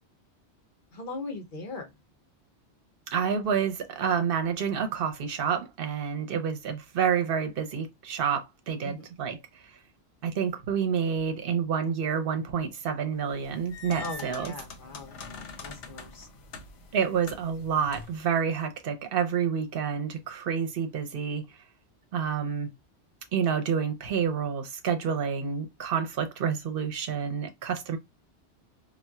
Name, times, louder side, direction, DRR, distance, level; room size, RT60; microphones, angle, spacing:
voice 1, 0.9-1.9 8.8-9.0 14.0-16.3, left 2 dB, 50° left, 0.9 m, -40 dB
voice 2, 3.1-9.4 10.2-14.5 16.9-21.4 22.1-22.7 23.3-28.0, right 7 dB, 55° right, 0.8 m, -28 dB
sound 1, 13.3-18.3, left 4 dB, 80° left, 1.0 m, -44 dB
4.1 x 2.2 x 2.3 m
omnidirectional pair, 1.2 m